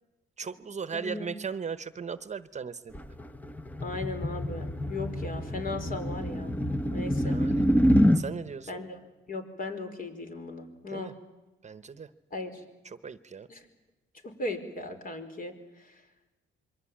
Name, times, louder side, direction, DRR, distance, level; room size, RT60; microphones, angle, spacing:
voice 1, 0.4-2.9 7.2-7.7 8.1-8.8 10.9-11.1 11.6-12.1 12.8-13.5, right 6 dB, 35° right, 13 dB, 1.1 m, -37 dB
voice 2, 0.9-1.3 3.8-6.5 6.9-7.4 8.7-9.0 9.3-11.1 12.3-12.6 13.5-13.6 14.2-15.5, left 2 dB, 45° left, 6 dB, 5.0 m, -37 dB
sound 1, 2.9-8.2, equal, 10° left, 1.1 m, -26 dB
27.0 x 23.5 x 8.8 m, 1.0 s
cardioid pair, 90°, 20 cm